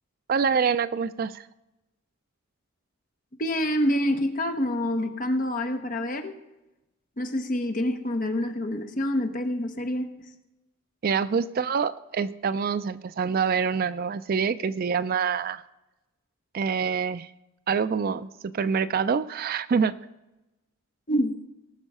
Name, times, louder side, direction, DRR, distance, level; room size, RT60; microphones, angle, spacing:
voice 1, 0.3-1.4 11.0-15.6 16.5-17.3 17.7-19.9, right 6 dB, 45° right, 15 dB, 0.3 m, -26 dB
voice 2, 3.4-6.3 7.2-10.1 21.1-21.3, left 1 dB, 40° left, 6 dB, 1.0 m, -27 dB
18.5 x 6.3 x 5.5 m, 0.98 s
head